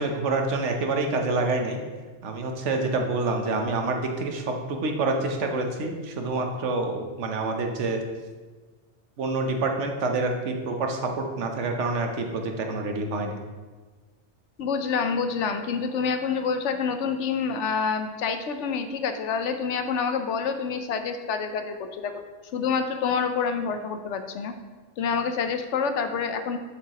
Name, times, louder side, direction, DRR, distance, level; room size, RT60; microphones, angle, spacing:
voice 1, 0.0-1.8 2.2-8.0 9.2-13.4, right 3 dB, 85° right, 3 dB, 1.2 m, -27 dB
voice 2, 14.6-22.2 22.5-24.5 25.0-26.6, left 5 dB, 80° left, 7 dB, 1.0 m, -27 dB
7.6 x 6.6 x 2.9 m, 1.3 s
omnidirectional pair, 1.2 m